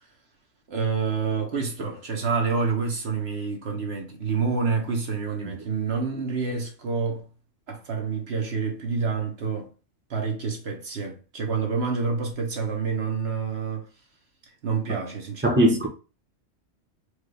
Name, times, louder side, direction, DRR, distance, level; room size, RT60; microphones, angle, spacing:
voice 1, 0.7-7.3 7.7-9.7 10.1-13.9 14.6-15.9, right 5 dB, 60° right, 1.1 m, -28 dB
voice 2, 15.4-15.9, equal, 10° right, 0.9 m, -20 dB
4.5 x 2.4 x 3.2 m
omnidirectional pair, 1.3 m